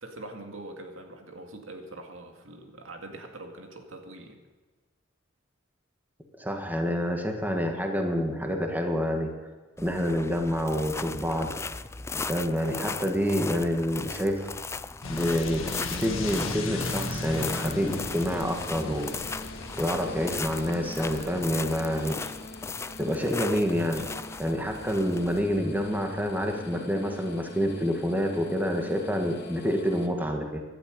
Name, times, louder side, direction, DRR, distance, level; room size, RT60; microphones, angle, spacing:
voice 1, 0.0-4.4, right 2 dB, 85° right, 4 dB, 2.2 m, -43 dB
voice 2, 6.4-9.3 9.8-11.5 12.3-14.5 15.1-19.1 19.7-22.3 23.0-24.1 24.4-30.6, equal, 10° right, 3 dB, 1.6 m, -28 dB
sound 1, 9.8-26.7, left 4 dB, 15° left, 0.3 m, -38 dB
sound 2, 15.0-22.1, left 2 dB, 85° left, 1.8 m, -37 dB
sound 3, 17.3-30.1, left 2 dB, 55° left, 1.6 m, -45 dB
17.0 x 12.0 x 5.3 m, 1.4 s
head